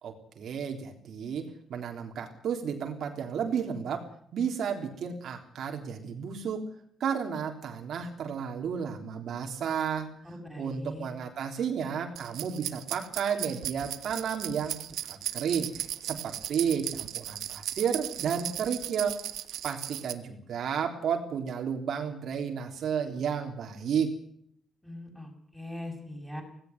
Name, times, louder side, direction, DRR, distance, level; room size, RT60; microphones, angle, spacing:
voice 1, 0.0-6.7 7.0-10.1 10.6-14.8 15.1-15.7 16.0-19.2 19.6-24.2, right 7 dB, 65° right, 3 dB, 3.5 m, -32 dB
voice 2, 10.2-11.1 24.8-26.4, left 1 dB, ahead, 2 dB, 7.0 m, -41 dB
sound 1, 12.2-20.1, right 12 dB, 90° right, 1.4 m, -37 dB
18.0 x 17.0 x 9.3 m, 0.65 s
cardioid pair, 140°, 0 cm